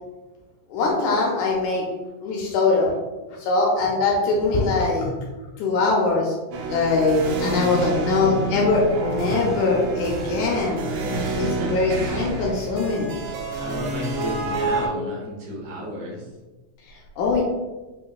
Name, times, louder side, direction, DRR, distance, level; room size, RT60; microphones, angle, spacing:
voice 1, 0.7-1.8 2.2-2.9 3.4-5.1 5.6-6.4 6.7-11.0 11.4-13.1 16.9-17.4, left 3 dB, 80° left, -2 dB, 1.8 m, -22 dB
sound 1, 6.5-14.9, right 2 dB, 90° right, 1.5 m, -28 dB
voice 2, 7.7-8.2 9.2-9.5 11.0-11.7 12.0-12.2 13.6-16.3, equal, 70° right, -4 dB, 2.1 m, -33 dB
5.6 x 2.3 x 2.2 m, 1.2 s
omnidirectional pair, 3.6 m